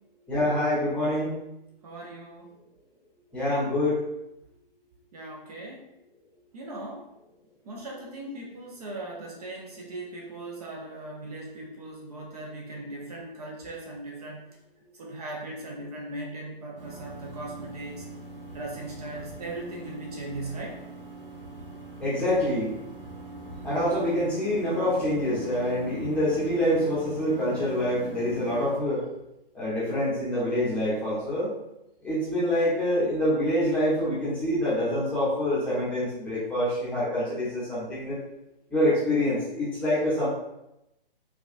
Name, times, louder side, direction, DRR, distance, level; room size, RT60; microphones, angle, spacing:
voice 1, 0.3-1.4 3.3-4.0 22.0-22.8 23.6-29.1 29.5-31.5 32.0-38.2 38.7-40.3, left 1 dB, 5° left, -9 dB, 0.8 m, -26 dB
voice 2, 1.8-2.5 5.1-5.9 6.5-7.1 7.6-14.5 14.9-18.1 18.5-20.8, right 2 dB, 40° right, -1 dB, 0.7 m, -39 dB
sound 1, 16.8-28.7, right 3 dB, 70° right, 1.0 m, -42 dB
4.6 x 2.3 x 2.5 m, 0.87 s
figure-of-eight pair, 135°, 29 cm